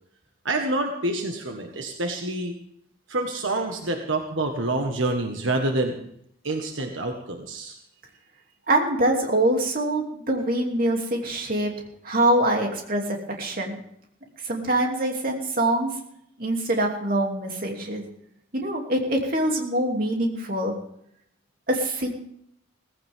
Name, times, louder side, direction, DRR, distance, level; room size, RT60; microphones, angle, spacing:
voice 1, 0.5-2.6 3.1-6.0 6.4-7.8, right 2 dB, 80° right, 3 dB, 1.6 m, -27 dB
voice 2, 8.7-11.7 12.0-13.8 14.4-15.9 16.4-18.1 18.5-20.7 21.7-22.1, right 1 dB, 45° right, 1 dB, 2.9 m, -24 dB
17.5 x 15.5 x 3.7 m, 0.70 s
head